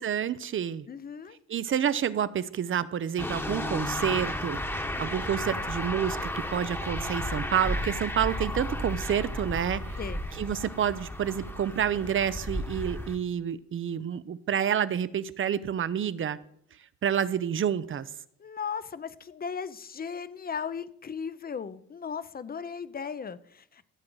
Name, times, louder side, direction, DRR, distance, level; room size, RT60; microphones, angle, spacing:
voice 1, 0.0-0.9 1.5-4.6 5.0-10.0 10.4-16.4 17.0-18.1, right 9 dB, 45° right, 16 dB, 0.6 m, -29 dB
voice 2, 0.9-1.4 10.0-10.2 18.4-23.8, left 6 dB, 30° left, 15 dB, 0.7 m, -37 dB
sound 1, 3.2-13.2, left 1 dB, 10° left, 1.2 m, -33 dB
15.0 x 7.6 x 3.9 m, 0.70 s
cardioid pair, 90°, 30 cm